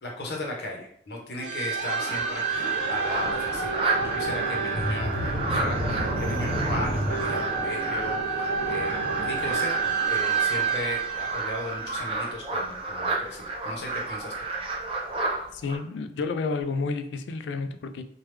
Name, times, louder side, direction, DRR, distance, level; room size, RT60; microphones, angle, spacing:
voice 1, 0.0-9.7 10.1-14.3, left 1 dB, 70° left, 0.8 m, -36 dB
sound 1, 1.4-12.6, right 4 dB, 80° right, 0.7 m, -28 dB
sound 2, 3.0-15.8, right 3 dB, 30° right, 0.5 m, -32 dB
voice 2, 15.5-18.0, left 4 dB, 90° left, 0.3 m, -30 dB
3.1 x 2.2 x 3.2 m
head